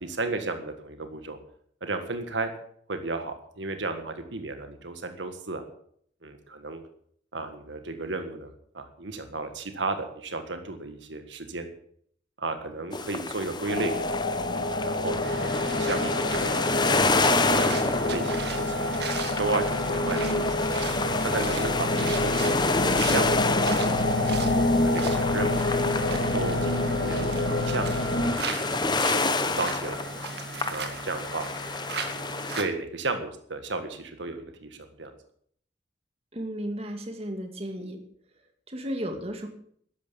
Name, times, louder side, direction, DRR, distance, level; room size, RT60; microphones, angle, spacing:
voice 1, 0.0-1.4 1.8-2.5 2.9-5.6 6.2-6.8 7.3-11.7 12.4-13.9 14.5-15.4 15.8-18.7 19.4-20.5 21.2-22.4 22.8-24.0 24.4-25.6 26.1-28.0 28.5-30.0 30.7-31.5 32.6-35.1, right 3 dB, 80° right, 7 dB, 1.7 m, -34 dB
sound 1, 12.9-32.6, left 3 dB, 25° left, 0.9 m, -29 dB
sound 2, 13.7-28.3, left 2 dB, 50° left, 1.8 m, -27 dB
sound 3, 15.2-32.6, right 3 dB, 60° right, 2.1 m, -37 dB
voice 2, 36.3-38.0 38.7-39.5, equal, 35° right, 4 dB, 2.3 m, -34 dB
13.0 x 11.0 x 7.1 m, 0.63 s
head